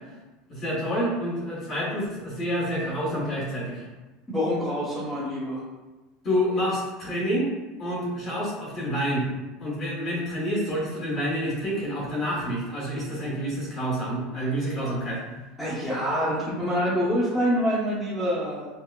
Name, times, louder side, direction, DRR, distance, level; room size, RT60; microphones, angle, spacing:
voice 1, 0.5-3.9 6.2-7.5 7.8-9.3 9.6-15.5, equal, 35° left, -4 dB, 1.1 m, -28 dB
voice 2, 4.3-5.6 15.6-18.7, equal, 5° left, -11 dB, 0.8 m, -26 dB
5.6 x 2.0 x 2.2 m, 1.1 s
supercardioid pair, 150°, 0 cm